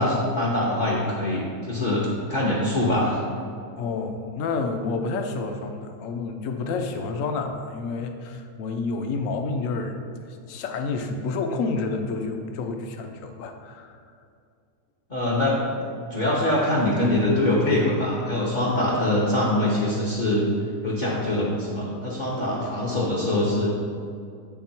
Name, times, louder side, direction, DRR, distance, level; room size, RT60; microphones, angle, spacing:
voice 1, 0.0-3.2 15.1-15.6 16.1-20.4 20.8-23.7, left 1 dB, 35° left, -6 dB, 0.8 m, -23 dB
voice 2, 3.8-10.0 10.5-14.0, left 3 dB, 65° left, 6 dB, 0.9 m, -29 dB
8.3 x 3.5 x 4.3 m, 2.4 s
omnidirectional pair, 1.7 m